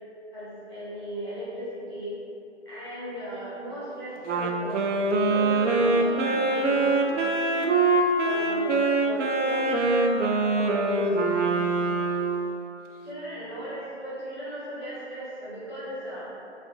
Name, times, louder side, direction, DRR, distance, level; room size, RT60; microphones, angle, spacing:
voice 1, 0.3-2.1 2.6-4.9 5.2-7.1 8.2-11.1 13.0-16.3, equal, 25° left, -12 dB, 0.9 m, -37 dB
Wind instrument woodwind instrument, 4.2-12.5, right 3 dB, 90° right, 0.5 m, -24 dB
4.0 x 2.4 x 2.6 m, 2.8 s
figure-of-eight pair, 175°, 35 cm